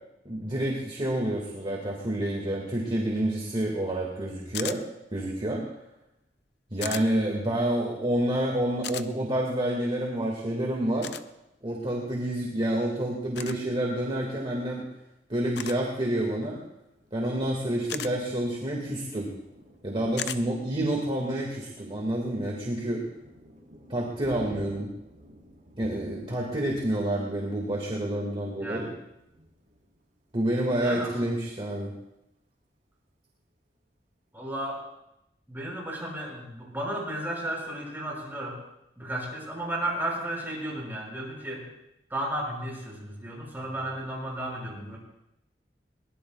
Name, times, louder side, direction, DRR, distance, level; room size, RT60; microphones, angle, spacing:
voice 1, 0.3-4.8 5.1-5.6 6.7-11.1 11.6-14.8 15.3-16.6 17.1-19.3 19.8-23.0 23.9-24.9 25.8-28.9 30.3-31.9, right 1 dB, 30° right, -2 dB, 2.0 m, -28 dB
sound 1, 4.5-4.8 6.8-7.0 8.8-9.1 11.0-11.2 13.3-13.6 15.6-15.8 17.9-18.1 20.2-20.4, left 9 dB, 65° left, 0.6 m, -34 dB
Thunder, 16.6-30.8 31.3-31.5 31.8-32.4, equal, 45° right, 3.8 m, -52 dB
voice 2, 30.8-31.2 34.3-34.8 35.5-38.6 39.0-41.7 42.1-45.0, right 1 dB, 10° right, -4 dB, 5.9 m, -34 dB
22.0 x 19.5 x 2.4 m, 0.85 s
head